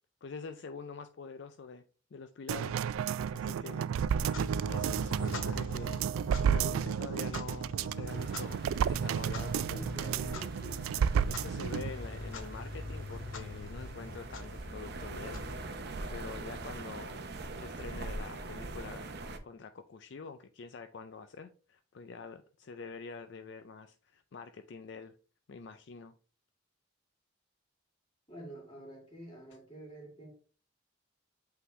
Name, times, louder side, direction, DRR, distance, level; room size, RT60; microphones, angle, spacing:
voice 1, 0.2-1.8 2.1-2.8 3.3-3.9 4.6-10.3 11.3-15.8 16.1-17.3 17.6-19.2 19.4-25.2 25.5-26.1, left 5 dB, 60° left, 0.4 m, -46 dB
sound 1, 2.5-11.9 12.3-12.4, right 8 dB, 90° right, 0.3 m, -32 dB
Clock, 4.2-16.1, left 2 dB, 75° left, 1.0 m, -43 dB
sound 2, 8.1-19.4, right 2 dB, 50° right, 0.7 m, -43 dB
voice 2, 9.7-10.9 17.3-17.4 28.3-30.3, right 1 dB, 25° left, 2.4 m, -48 dB
8.3 x 3.8 x 3.1 m
head